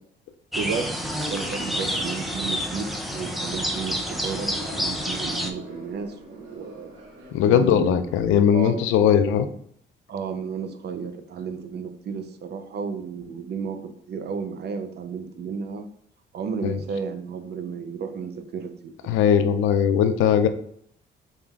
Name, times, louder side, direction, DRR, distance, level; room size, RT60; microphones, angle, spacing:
sound 1, 0.5-5.5, equal, ahead, 0.5 m, -29 dB
voice 1, 0.6-1.0 1.3-6.9 7.4-8.0 8.5-9.1 10.1-15.9 16.3-19.2, right 6 dB, 55° right, 8 dB, 0.5 m, -33 dB
sound 2, 4.5-8.8, right 2 dB, 75° right, 1.1 m, -44 dB
voice 2, 7.3-9.5 16.6-16.8 19.1-20.5, left 8 dB, 90° left, 10 dB, 0.4 m, -19 dB
4.1 x 3.6 x 2.3 m, 0.66 s
cardioid pair, 90°, 20 cm